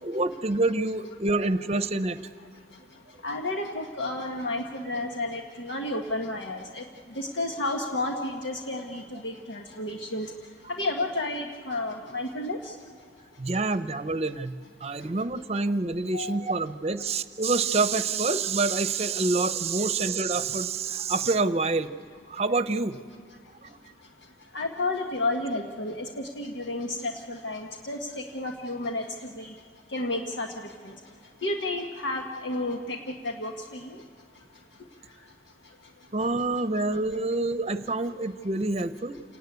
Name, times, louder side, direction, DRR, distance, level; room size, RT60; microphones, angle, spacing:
voice 1, 0.0-2.2 13.4-21.9 22.3-23.0 23.6-23.8 36.1-39.2, right 3 dB, 35° right, 12 dB, 0.8 m, -27 dB
voice 2, 3.2-6.8 7.2-10.3 10.8-12.7 16.1-16.4 24.5-29.0 29.4-29.5 29.9-30.5 31.4-33.0 33.2-33.8, left 2 dB, 80° left, 2 dB, 1.4 m, -31 dB
29.0 x 17.5 x 9.5 m, 2.3 s
head